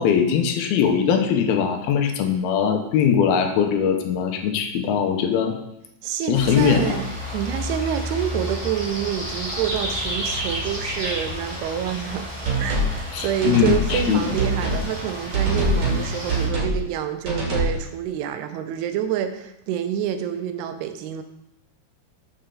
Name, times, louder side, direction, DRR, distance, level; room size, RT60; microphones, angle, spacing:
voice 1, 0.0-5.5 6.3-7.0 13.1-14.4, left 7 dB, 75° left, 5 dB, 2.5 m, -21 dB
voice 2, 6.0-21.2, right 9 dB, 85° right, 8 dB, 2.7 m, -27 dB
sound 1, 6.3-16.5, equal, 15° right, 1.0 m, -31 dB
sound 2, 12.4-12.9 13.4-14.1 14.4-14.8 15.3-16.0 16.3-16.8 17.2-17.8, right 2 dB, 40° right, 2.3 m, -23 dB
7.0 x 6.6 x 3.8 m, 0.81 s
omnidirectional pair, 4.6 m